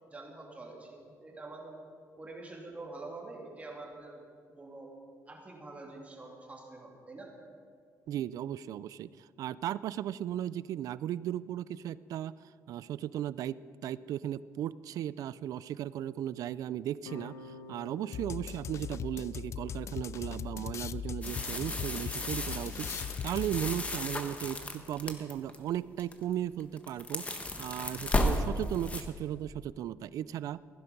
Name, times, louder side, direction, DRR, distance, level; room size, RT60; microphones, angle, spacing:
voice 1, 0.1-1.8 2.2-4.2 4.5-4.9 5.3-7.3, right 2 dB, 20° right, -1 dB, 2.7 m, -46 dB
voice 2, 8.1-12.3 12.7-27.2 27.6-30.6, right 11 dB, 70° right, 18 dB, 0.4 m, -36 dB
sound 1, 17.0-22.1, left 4 dB, 90° left, 0.8 m, -52 dB
sound 2, 18.1-24.0, left 7 dB, 50° left, 0.4 m, -39 dB
sound 3, 21.2-25.6 26.0-26.3 26.6-29.0, left 1 dB, 20° left, 1.2 m, -34 dB
16.0 x 10.5 x 5.3 m, 2.2 s
cardioid pair, 110°, 6 cm